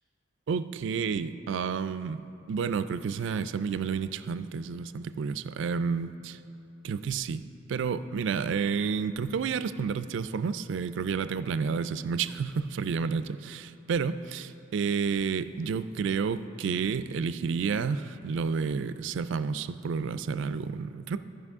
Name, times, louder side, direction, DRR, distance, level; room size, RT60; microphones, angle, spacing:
voice 1, 0.5-2.2 2.5-6.1 6.8-7.4 7.7-21.2, right 5 dB, 65° right, 13 dB, 0.3 m, -30 dB
15.5 x 5.5 x 3.6 m, 2.9 s
head